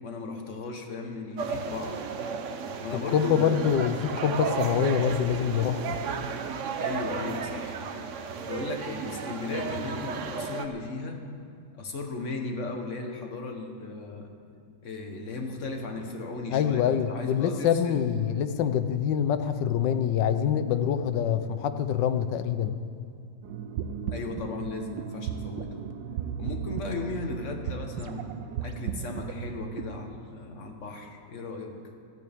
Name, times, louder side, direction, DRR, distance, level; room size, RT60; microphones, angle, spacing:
voice 1, 0.0-2.0 2.8-4.1 6.8-7.8 8.4-11.2 11.7-14.3 14.8-18.0 24.1-25.8 26.4-28.3 28.6-31.8, left 3 dB, 45° left, 3 dB, 1.5 m, -36 dB
sound 1, 1.4-10.7, right 6 dB, 60° right, 0.9 m, -33 dB
voice 2, 3.1-3.9 4.2-6.0 16.5-22.8, left 8 dB, 85° left, 10 dB, 1.4 m, -25 dB
sound 2, 23.4-29.9, right 8 dB, 85° right, 1.4 m, -35 dB
27.0 x 9.3 x 3.6 m, 2.3 s
omnidirectional pair, 1.9 m